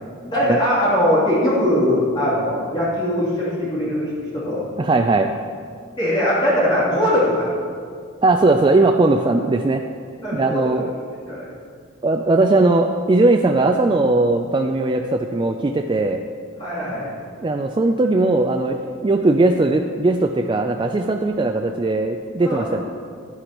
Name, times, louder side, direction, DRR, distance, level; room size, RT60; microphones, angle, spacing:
voice 1, 0.3-4.7 6.0-7.5 10.2-10.8 11.3-11.5 16.6-17.1 22.4-22.8, left 1 dB, 20° left, -9 dB, 3.0 m, -21 dB
voice 2, 4.8-5.3 8.2-9.8 10.3-10.9 12.0-16.2 17.4-22.8, right 2 dB, 25° right, 4 dB, 0.3 m, -18 dB
13.0 x 9.9 x 3.0 m, 2.1 s
head